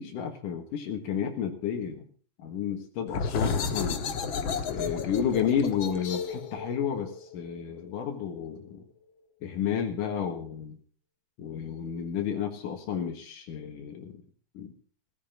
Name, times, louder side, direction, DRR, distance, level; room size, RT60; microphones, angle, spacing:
voice 1, 0.0-2.1 2.4-4.0 4.7-8.8 9.4-10.8 11.4-14.1 14.5-14.7, left 8 dB, 85° left, 3 dB, 3.2 m, -31 dB
sound 1, 3.1-8.5, left 5 dB, 50° left, 1.6 m, -33 dB
16.5 x 15.0 x 3.8 m, 0.41 s
omnidirectional pair, 3.7 m